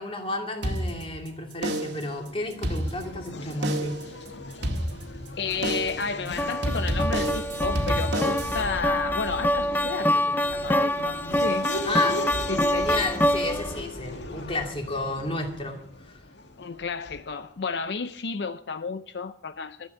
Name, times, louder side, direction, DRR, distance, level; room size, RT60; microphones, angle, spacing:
voice 1, 0.0-4.0 11.8-12.2 12.7-16.2, left 2 dB, 30° left, 2.5 m, -32 dB
sound 1, 0.6-1.3 1.6-2.1 2.5-3.3 3.6-4.1 4.6-5.3 5.6-6.1 6.6-8.6, right 1 dB, 80° right, 1.8 m, -29 dB
Race car auto racing / Accelerating revving vroom, 1.9-17.4, left 1 dB, 90° left, 1.9 m, -38 dB
voice 2, 5.4-11.7 12.5-12.8 16.6-19.9, left 4 dB, 75° left, 0.6 m, -32 dB
sound 2, 6.4-13.8, equal, 10° left, 0.6 m, -26 dB
13.0 x 8.2 x 8.9 m
head